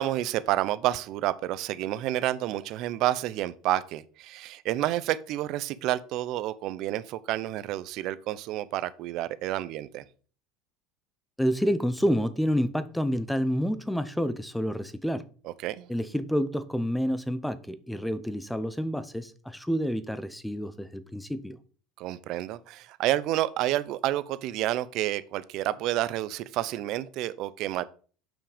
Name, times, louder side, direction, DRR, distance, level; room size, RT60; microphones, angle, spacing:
voice 1, 0.0-10.0 15.4-15.9 22.0-27.8, right 14 dB, 50° right, 0.6 m, -29 dB
voice 2, 11.4-15.2 15.9-21.6, equal, 5° left, 0.7 m, -28 dB
7.3 x 5.9 x 5.1 m
supercardioid pair, 145°, 0 cm